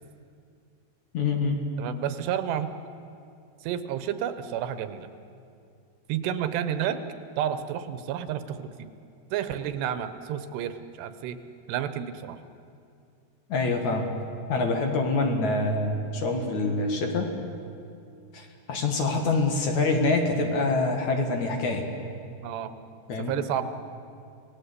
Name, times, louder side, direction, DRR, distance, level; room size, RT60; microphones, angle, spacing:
voice 1, 1.1-1.6 13.5-14.1 14.5-17.3 18.3-21.8 23.1-23.4, left 3 dB, 50° left, 3 dB, 2.9 m, -25 dB
voice 2, 1.8-2.7 3.6-5.1 6.1-7.0 7.4-8.7 9.3-11.4 11.7-12.4 22.4-22.7 23.3-23.6, right 10 dB, 90° right, 11 dB, 3.2 m, -30 dB
29.0 x 18.5 x 8.3 m, 2.4 s
omnidirectional pair, 4.7 m